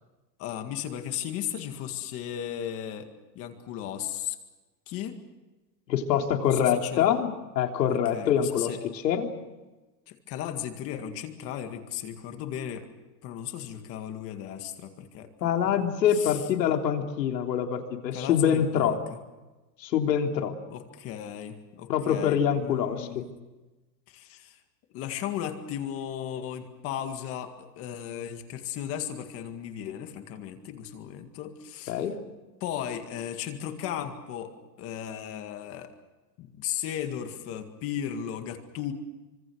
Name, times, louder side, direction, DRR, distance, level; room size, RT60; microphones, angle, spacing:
voice 1, 0.4-3.1 3.4-4.4 4.9-5.2 6.4-7.1 7.9-8.8 10.1-12.9 13.2-15.8 16.1-16.4 18.1-19.0 20.7-23.3 24.1-24.6 24.9-32.0 32.6-34.5 34.8-35.9 36.4-38.9, left 10 dB, 30° left, 7 dB, 1.9 m, -36 dB
voice 2, 5.9-7.3 7.5-9.3 15.4-19.0 19.8-20.5 21.9-23.2 31.9-32.2, left 8 dB, 90° left, 3 dB, 3.4 m, -25 dB
25.5 x 25.5 x 6.4 m, 1.1 s
supercardioid pair, 170°, 48 cm